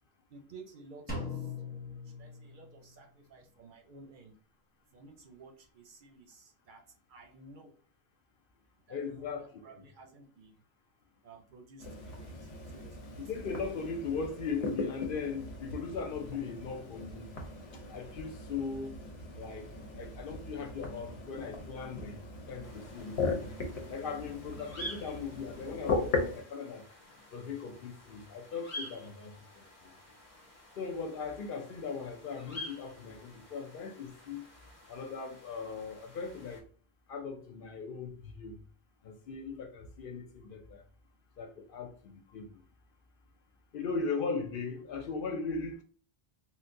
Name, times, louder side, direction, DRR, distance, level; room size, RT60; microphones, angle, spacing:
voice 1, 0.3-1.6 2.0-4.3 4.9-7.8 8.9-10.6 11.2-13.1, right 3 dB, 60° right, 0.7 m, -54 dB
Drum, 1.1-3.0, left 3 dB, 10° left, 0.8 m, -40 dB
voice 2, 8.9-9.5 13.2-17.3 17.7-19.0 19.4-23.6 23.9-26.8 27.3-29.9 30.8-34.4 34.9-36.7 37.1-38.6 39.0-40.8 41.4-42.6 43.7-45.8, left 5 dB, 65° left, 0.7 m, -39 dB
sound 1, 11.8-26.4, left 3 dB, 90° left, 1.1 m, -38 dB
sound 2, 22.6-36.6, left 1 dB, 35° left, 1.0 m, -49 dB
3.9 x 2.1 x 2.5 m
omnidirectional pair, 1.0 m